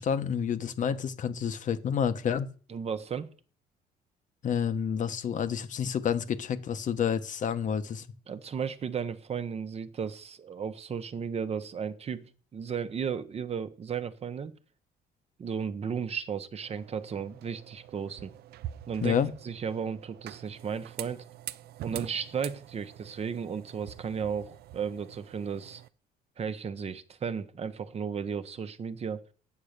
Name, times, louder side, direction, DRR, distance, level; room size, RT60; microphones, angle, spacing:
voice 1, 0.0-2.5 4.4-8.1 19.0-19.3, left 7 dB, 50° left, 1.0 m, -29 dB
voice 2, 2.7-3.3 8.3-14.5 15.4-18.3 18.9-19.2 19.4-21.2 21.8-25.8 26.4-29.2, right 6 dB, 40° right, 1.0 m, -34 dB
sound 1, 16.6-25.9, right 12 dB, 70° right, 0.6 m, -45 dB
8.4 x 7.4 x 6.7 m
cardioid pair, 110°, 17 cm